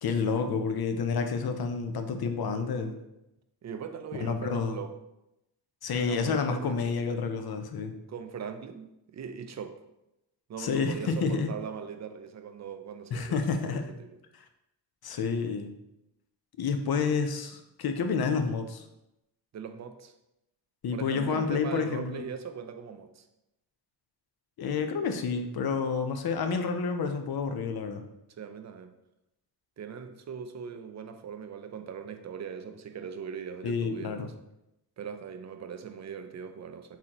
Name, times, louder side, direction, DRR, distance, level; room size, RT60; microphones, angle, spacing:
voice 1, 0.0-2.9 4.2-4.8 5.8-7.9 10.6-11.5 13.1-13.9 15.0-15.7 16.6-18.8 20.8-22.3 24.6-28.0 33.6-34.3, left 5 dB, 55° left, 6 dB, 0.5 m, -29 dB
voice 2, 2.6-3.0 3.6-5.0 6.0-6.8 8.1-9.8 10.5-14.2 16.9-17.1 19.5-20.1 20.9-23.2 28.4-28.9 29.8-34.3 35.0-37.0, right 7 dB, 40° right, 8 dB, 0.4 m, -40 dB
4.0 x 2.8 x 2.9 m, 0.88 s
cardioid pair, 65°, 45 cm